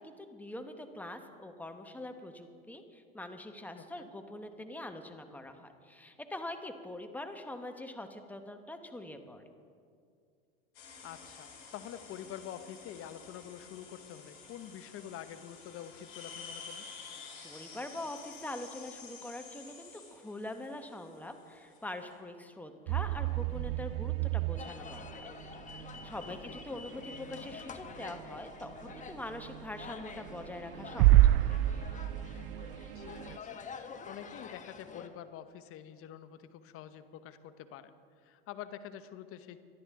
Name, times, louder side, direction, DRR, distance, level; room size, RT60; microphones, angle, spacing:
voice 1, 0.0-9.4 17.4-25.1 26.0-31.6, left 1 dB, 5° left, 6 dB, 1.3 m, -44 dB
voice 2, 3.7-4.1 11.0-16.8 26.3-26.5 32.9-33.6 34.1-37.9 38.2-39.6, left 10 dB, 45° left, 11 dB, 1.0 m, -47 dB
sound 1, 10.7-22.1, left 5 dB, 75° left, 4.0 m, -51 dB
sound 2, 22.9-33.4, right 15 dB, 65° right, 0.4 m, -30 dB
sound 3, 24.6-35.1, left 5 dB, 25° left, 1.1 m, -47 dB
24.0 x 11.0 x 3.8 m, 2.2 s
hypercardioid pair, 95°, 32 cm